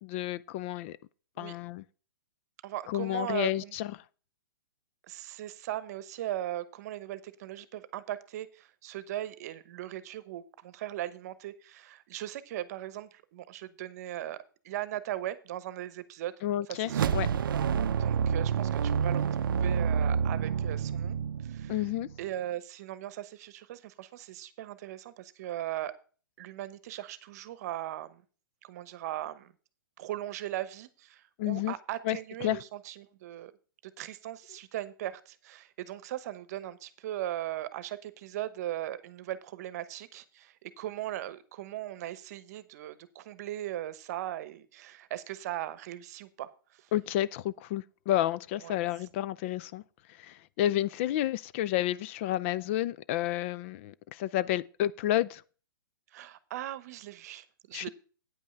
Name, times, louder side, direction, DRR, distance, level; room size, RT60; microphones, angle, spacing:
voice 1, 0.0-1.0 1.4-1.8 2.9-3.9 16.4-17.3 21.7-22.1 31.4-31.7 32.1-32.6 46.9-49.8 50.1-55.4 57.7-57.9, left 13 dB, 35° left, 0.3 m, -30 dB
voice 2, 2.6-3.7 5.1-16.3 16.7-17.1 18.0-21.9 22.2-25.9 26.4-28.2 28.6-29.5 30.0-33.5 33.8-46.9 48.6-48.8 56.1-57.9, right 13 dB, 50° right, 0.9 m, -39 dB
sound 1, 16.9-22.2, right 7 dB, 75° right, 0.5 m, -28 dB
9.2 x 5.5 x 6.6 m
hypercardioid pair, 140°, 11 cm